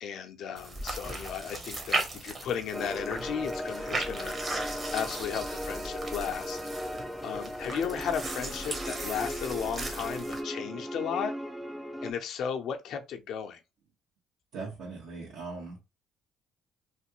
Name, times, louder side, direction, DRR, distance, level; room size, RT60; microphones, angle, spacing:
voice 1, 0.0-4.4 4.9-6.6 6.9-11.4 12.0-13.6, left 7 dB, 65° left, 0.6 m, -35 dB
sound 1, 0.6-10.4, right 2 dB, 30° right, 1.0 m, -37 dB
sound 2, 2.7-12.1, equal, 5° right, 0.3 m, -37 dB
voice 2, 14.5-15.8, right 3 dB, 75° right, 1.5 m, -39 dB
3.1 x 2.5 x 2.9 m
cardioid pair, 95°, 0 cm